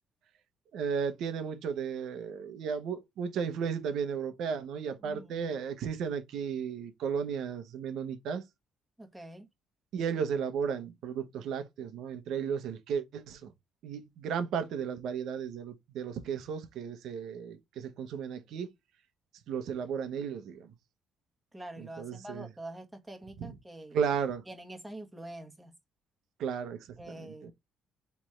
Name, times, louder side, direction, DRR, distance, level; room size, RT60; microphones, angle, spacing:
voice 1, 0.7-8.4 9.9-13.5 13.8-18.7 19.5-20.7 21.8-22.5 23.4-23.5 23.9-24.4 26.4-27.5, right 7 dB, 75° right, 1.0 m, -34 dB
voice 2, 5.0-5.5 9.0-9.5 21.5-24.0 24.5-25.7 27.0-27.5, right 1 dB, 10° right, 1.4 m, -45 dB
3.5 x 3.2 x 4.3 m
cardioid pair, 85°, 0 cm